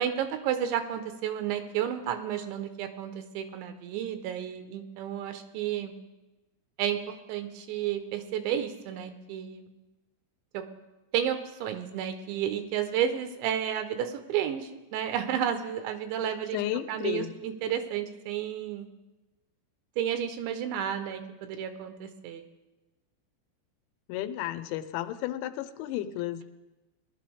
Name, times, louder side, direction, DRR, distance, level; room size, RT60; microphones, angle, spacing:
voice 1, 0.0-5.9 6.8-7.0 7.3-9.7 10.5-10.6 11.1-16.6 16.9-18.9 20.0-22.4, right 9 dB, 85° right, 8 dB, 3.1 m, -31 dB
voice 2, 16.5-17.4 24.1-26.4, left 13 dB, 85° left, 11 dB, 3.0 m, -33 dB
19.5 x 11.5 x 3.4 m, 1.0 s
omnidirectional pair, 5.3 m